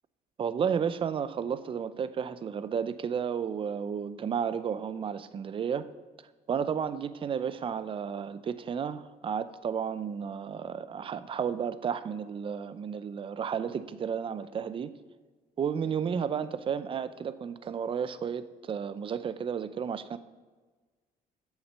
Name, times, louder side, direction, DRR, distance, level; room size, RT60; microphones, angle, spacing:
voice 1, 0.4-5.9 6.5-14.9 15.6-20.2, right 7 dB, 30° right, 13 dB, 0.5 m, -32 dB
8.1 x 6.4 x 6.5 m, 1.3 s
cardioid pair, 110°, 17 cm